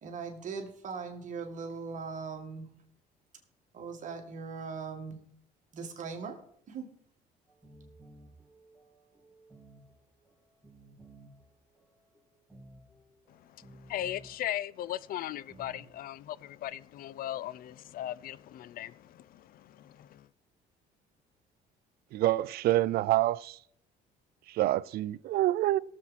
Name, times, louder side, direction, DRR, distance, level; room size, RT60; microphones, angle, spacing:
voice 1, 0.0-2.7 3.7-5.2 5.7-6.4 6.7-6.9, right 5 dB, 50° right, 2.0 m, -39 dB
sound 1, 7.5-16.6, right 1 dB, ahead, 4.0 m, -57 dB
voice 2, 13.3-20.3, left 12 dB, 60° left, 0.5 m, -38 dB
voice 3, 22.1-23.6 24.5-25.8, right 15 dB, 65° right, 0.4 m, -27 dB
17.5 x 7.3 x 4.2 m
cardioid pair, 110°, 17 cm